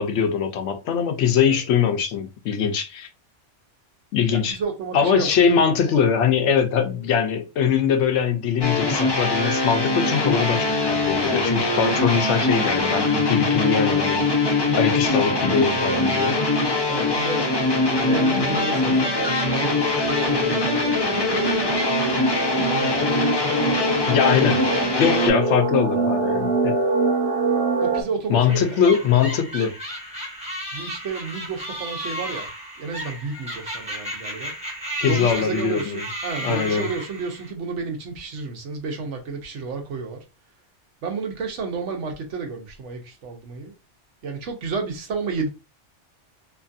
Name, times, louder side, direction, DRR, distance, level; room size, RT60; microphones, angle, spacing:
voice 1, 0.0-3.1 4.1-4.6 4.9-14.3 14.7-16.4 24.1-24.7 25.0-26.8 28.3-29.7 35.0-36.0 36.4-36.9, left 7 dB, 80° left, 0.9 m, -22 dB
voice 2, 4.3-5.3 16.9-17.5 17.9-21.6 22.7-23.0 27.8-29.3 30.7-32.5 32.8-34.5 35.0-40.2 41.0-43.7 44.2-45.5, right 4 dB, 85° right, 1.1 m, -31 dB
sound 1, 8.6-25.3, left 3 dB, 30° left, 0.5 m, -22 dB
sound 2, 9.7-28.0, right 4 dB, 55° right, 0.8 m, -27 dB
sound 3, 28.4-37.5, equal, 5° right, 0.8 m, -34 dB
2.9 x 2.6 x 2.3 m
omnidirectional pair, 1.2 m